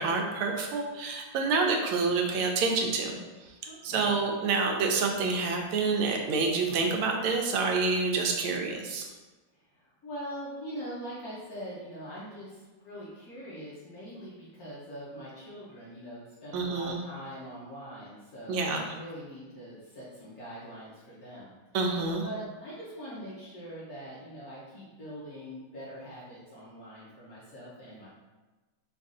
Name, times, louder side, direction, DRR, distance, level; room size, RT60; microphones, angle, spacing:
voice 1, 0.0-3.1 3.8-9.1 16.5-17.0 18.5-18.9 21.7-22.2, right 4 dB, 85° right, 2 dB, 1.5 m, -28 dB
voice 2, 3.6-4.3 9.5-21.5 22.2-28.1, equal, 60° left, -8 dB, 1.1 m, -43 dB
4.0 x 2.5 x 3.6 m, 1.2 s
omnidirectional pair, 2.3 m